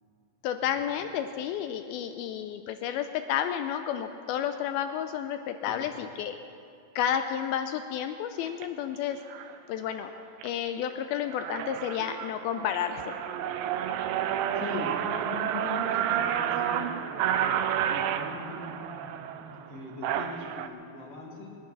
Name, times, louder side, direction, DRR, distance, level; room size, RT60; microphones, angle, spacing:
voice 1, 0.4-6.4 7.0-9.2 9.7-10.1 10.4-13.2, left 9 dB, 85° left, 8 dB, 2.2 m, -31 dB
sound 1, 8.5-8.7 9.3-9.6 10.0-10.5 10.9-11.0 11.2-20.7, right 10 dB, 85° right, 2.0 m, -30 dB
voice 2, 14.5-21.5, left 3 dB, 45° left, -2 dB, 2.6 m, -41 dB
23.0 x 9.6 x 6.0 m, 2.5 s
omnidirectional pair, 4.8 m